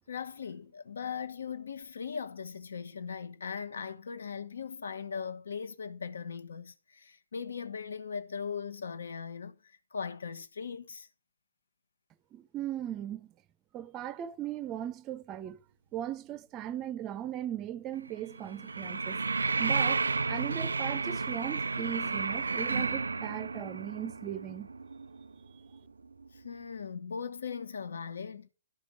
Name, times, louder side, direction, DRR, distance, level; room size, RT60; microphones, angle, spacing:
voice 1, 0.1-11.1 26.3-28.5, left 6 dB, 70° left, 1.4 m, -39 dB
voice 2, 12.3-13.3 13.7-15.6 15.9-19.2 19.6-24.7, right 11 dB, 25° right, 0.5 m, -38 dB
sound 1, 17.9-26.3 26.5-26.6, right 4 dB, 80° right, 0.4 m, -32 dB
12.5 x 5.1 x 6.4 m
figure-of-eight pair, 130°, 0 cm